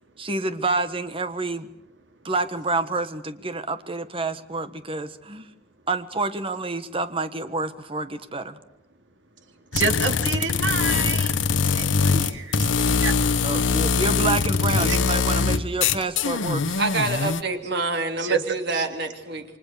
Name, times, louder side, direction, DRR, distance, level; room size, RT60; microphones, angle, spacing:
voice 1, 0.2-1.7 2.2-5.5 5.9-8.6 13.4-16.8, right 3 dB, 30° right, 11 dB, 1.4 m, -28 dB
sound 1, 9.7-17.4, left 5 dB, 85° left, 0.9 m, -22 dB
voice 2, 9.7-11.3 11.7-12.2 13.0-13.1 14.7-15.0 18.2-18.4 18.7-18.9, right 4 dB, 75° right, 6 dB, 2.9 m, -27 dB
voice 3, 16.8-19.4, right 3 dB, 60° right, 6 dB, 2.8 m, -27 dB
29.0 x 24.0 x 6.8 m, 0.88 s
head